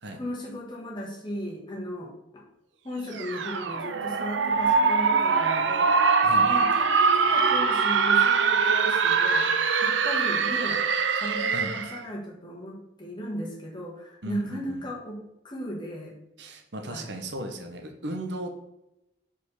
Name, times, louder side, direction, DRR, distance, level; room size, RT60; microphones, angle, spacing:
voice 1, 0.1-2.4 2.8-9.5 9.8-10.8 11.1-16.1 16.9-17.1, equal, 25° left, -3 dB, 1.6 m, -36 dB
sound 1, 3.1-12.0, right 5 dB, 85° right, 0.5 m, -23 dB
voice 2, 14.2-14.8 16.4-18.6, right 1 dB, 70° right, 4 dB, 0.9 m, -36 dB
5.0 x 4.4 x 5.4 m, 0.88 s
head